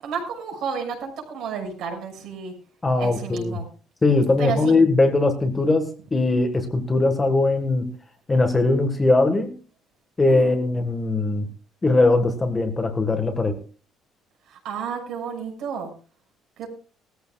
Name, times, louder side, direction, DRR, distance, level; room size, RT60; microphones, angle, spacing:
voice 1, 0.0-2.5 3.0-3.7 4.4-4.7 10.3-10.6 14.5-15.9 16.6-16.7, right 6 dB, 60° right, 3 dB, 6.2 m, -31 dB
voice 2, 2.8-3.6 4.0-7.9 8.3-9.5 10.2-11.5 11.8-13.6, left 2 dB, 15° left, 6 dB, 1.5 m, -20 dB
20.0 x 14.5 x 2.4 m, 0.37 s
cardioid pair, 180°, 0 cm